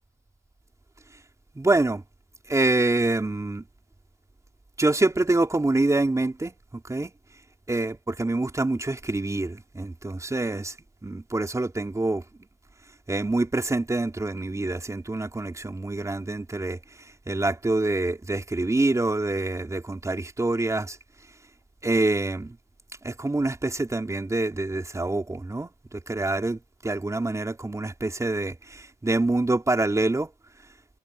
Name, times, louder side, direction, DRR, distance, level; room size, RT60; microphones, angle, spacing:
voice 1, 1.5-2.0 2.5-3.6 4.8-7.1 7.7-10.7 11.0-12.2 13.1-16.8 17.3-21.0 21.8-22.6 23.0-30.3, right 2 dB, 15° right, 3.7 m, -26 dB
cardioid pair, 90°, 20 cm